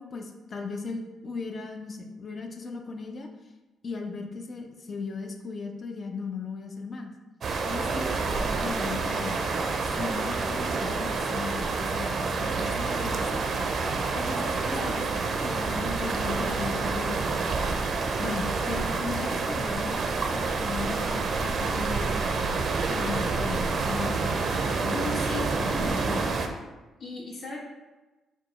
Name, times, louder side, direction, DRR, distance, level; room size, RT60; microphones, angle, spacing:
voice 1, 0.0-3.3 3.8-7.1 7.6-9.4 9.9-13.4 14.1-17.4 18.2-20.0 20.3-22.1 22.9-25.1 25.5-26.2, left 4 dB, 40° left, 4 dB, 0.5 m, -37 dB
sound 1, 7.4-26.5, right 4 dB, 55° right, 0.4 m, -28 dB
voice 2, 14.7-15.1 24.9-26.2 27.0-27.6, left 2 dB, 65° left, -3 dB, 1.3 m, -37 dB
4.5 x 2.3 x 4.0 m, 1.2 s
cardioid pair, 90°, 0 cm